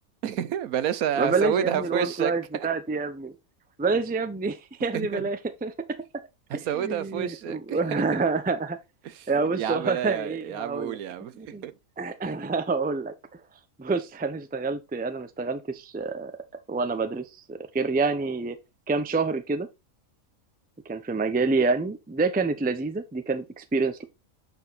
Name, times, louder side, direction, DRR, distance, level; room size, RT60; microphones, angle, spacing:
voice 1, 0.2-2.7 4.9-5.2 6.5-8.2 9.0-9.3 9.6-11.7, right 10 dB, 80° right, 1.2 m, -30 dB
voice 2, 1.2-3.3 3.8-5.7 6.5-8.8 9.3-11.0 11.3-11.6 12.0-13.1 13.8-16.3 16.7-18.6 18.9-19.7 20.9-24.0, right 4 dB, 10° right, 0.4 m, -27 dB
7.9 x 4.6 x 4.0 m
omnidirectional pair, 1.5 m